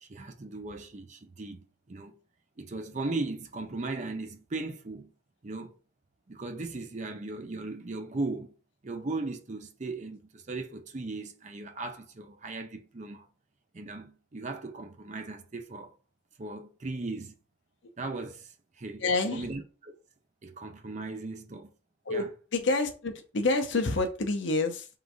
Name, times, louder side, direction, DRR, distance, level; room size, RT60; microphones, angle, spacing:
voice 1, 0.0-2.1 2.6-5.1 5.4-5.8 6.3-8.5 8.8-13.3 13.7-15.9 16.4-17.3 18.0-19.0 19.3-19.9 20.4-21.7 22.1-22.3, right 3 dB, 35° right, 0.5 m, -37 dB
voice 2, 19.0-19.5 22.1-24.9, left 3 dB, 55° left, 0.7 m, -28 dB
3.8 x 2.6 x 4.7 m
head